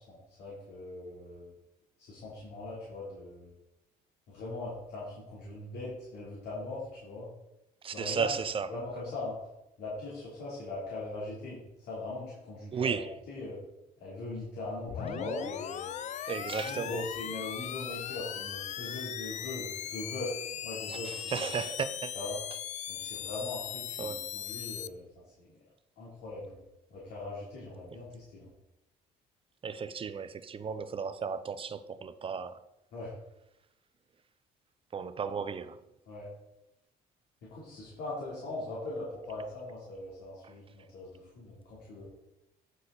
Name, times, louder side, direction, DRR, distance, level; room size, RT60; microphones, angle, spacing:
voice 1, 0.1-1.5 2.0-3.5 4.3-7.3 7.9-8.3 8.7-9.3 9.8-13.6 14.0-15.9 16.6-21.4 22.1-22.4 22.9-25.0 25.4-25.6 26.0-26.6 26.9-28.5 32.9-33.1 36.1-36.3 37.5-42.1, left 2 dB, 75° left, 3.4 m, -40 dB
voice 2, 7.8-8.7 12.7-13.1 16.3-17.0 20.9-22.1 24.0-24.2 29.6-32.6 34.9-35.8 40.4-40.5, right 6 dB, 30° right, 0.6 m, -34 dB
sound 1, 14.9-24.9, left 10 dB, 45° left, 0.4 m, -39 dB
9.7 x 6.3 x 4.2 m
cardioid pair, 110°, 17 cm